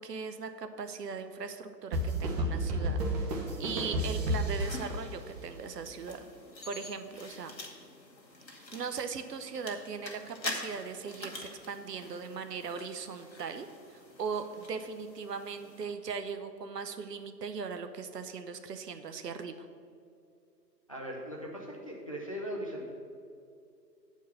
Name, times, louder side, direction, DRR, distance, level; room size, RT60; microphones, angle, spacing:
voice 1, 0.0-6.2 6.7-7.5 8.5-19.7, right 5 dB, 70° right, 8 dB, 0.8 m, -39 dB
sound 1, 1.9-5.5, right 1 dB, 25° right, 0.9 m, -31 dB
sound 2, 4.6-15.8, left 2 dB, 85° left, 1.4 m, -46 dB
voice 2, 20.9-22.9, equal, 25° left, -2 dB, 0.4 m, -39 dB
8.4 x 4.6 x 6.7 m, 2.5 s
figure-of-eight pair, 135°, 50 cm